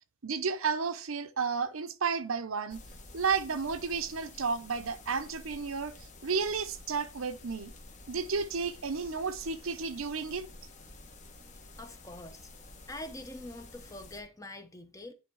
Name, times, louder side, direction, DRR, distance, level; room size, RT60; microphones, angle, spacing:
voice 1, 0.2-2.8 3.1-7.7 8.1-10.5, right 5 dB, 75° right, 0.8 m, -32 dB
sound 1, 2.7-14.2, left 2 dB, 35° left, 1.3 m, -51 dB
voice 2, 11.8-12.5 12.9-15.1, left 1 dB, 15° left, 0.8 m, -44 dB
10.5 x 3.5 x 4.8 m
head